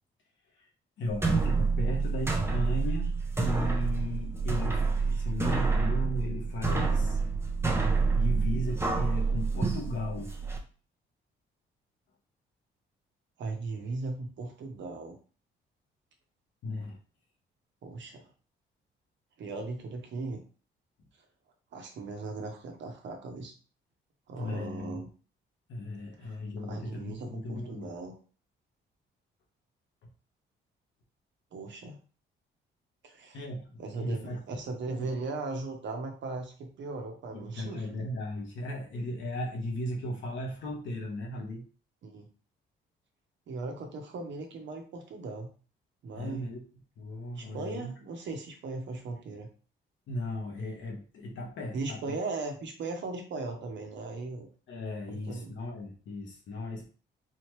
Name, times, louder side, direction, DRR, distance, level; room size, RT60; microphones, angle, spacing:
voice 1, 1.0-3.1 3.4-7.2 8.1-10.3 16.6-17.0 24.4-25.0 25.7-27.9 33.3-34.4 35.0-35.1 37.3-41.6 46.2-46.6 47.0-47.9 50.1-52.0 54.7-56.9, left 1 dB, 70° left, 0 dB, 1.4 m, -36 dB
sound 1, 1.1-10.6, right 4 dB, 10° right, 0.8 m, -28 dB
voice 2, 13.4-15.2 17.8-18.3 19.4-20.4 21.7-23.5 24.3-25.1 26.2-28.1 31.5-32.0 33.0-33.4 33.8-37.9 42.0-42.3 43.5-45.5 46.0-46.5 47.3-49.5 51.7-54.5 55.1-55.5, right 3 dB, 65° right, 3 dB, 1.1 m, -38 dB
4.1 x 3.0 x 3.3 m, 0.38 s
cardioid pair, 90°, 20 cm